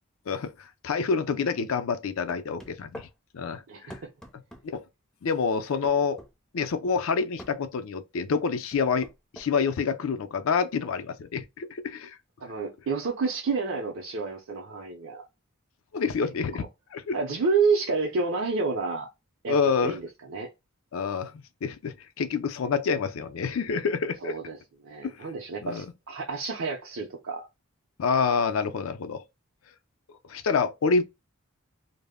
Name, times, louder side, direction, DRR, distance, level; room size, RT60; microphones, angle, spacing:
voice 1, 0.3-3.1 3.3-4.0 4.7-4.8 5.2-6.2 6.5-9.1 9.3-12.2 15.9-16.7 16.9-17.2 19.5-20.0 20.9-24.3 25.0-25.3 25.6-25.9 28.0-29.2 30.3-31.0, left 5 dB, 75° left, 0.4 m, -27 dB
sound 1, 2.3-3.1 3.9-4.7 5.8-6.3 7.4-7.6 8.7-9.5, equal, 5° left, 0.4 m, -44 dB
voice 2, 12.4-15.2 17.1-19.1 19.4-20.5 24.2-24.6 24.8-27.5, right 4 dB, 65° right, 0.5 m, -29 dB
2.0 x 2.0 x 3.4 m
head